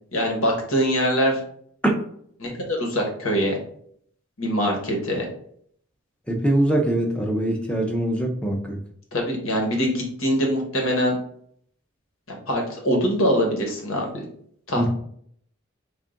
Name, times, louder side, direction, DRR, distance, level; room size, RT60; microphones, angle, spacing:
voice 1, 0.1-1.4 2.4-3.6 4.4-5.3 9.1-11.2 12.3-14.2 14.7-14.9, equal, 75° left, 0 dB, 1.2 m, -23 dB
voice 2, 6.3-8.8 14.8-14.9, right 1 dB, 5° left, 1 dB, 0.6 m, -23 dB
3.6 x 2.4 x 3.7 m, 0.63 s
head